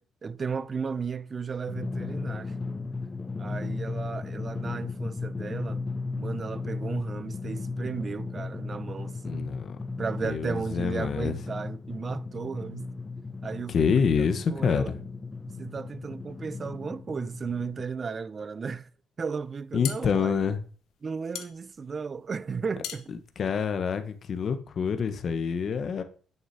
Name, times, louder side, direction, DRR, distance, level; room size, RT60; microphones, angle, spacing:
voice 1, 0.0-2.5 3.4-5.8 6.2-9.5 10.0-12.9 13.4-14.0 14.5-14.9 15.5-18.9 19.2-20.3 21.0-23.1, right 5 dB, 40° right, 0.5 m, -35 dB
Drum, 1.7-17.8, left 3 dB, 25° left, 0.5 m, -36 dB
voice 2, 9.2-9.8 10.2-11.3 13.7-15.0 19.7-20.6 23.4-26.0, left 6 dB, 55° left, 1.2 m, -27 dB
sound 1, 19.5-24.4, left 11 dB, 85° left, 1.1 m, -41 dB
7.2 x 6.6 x 8.0 m
cardioid pair, 90°, 0 cm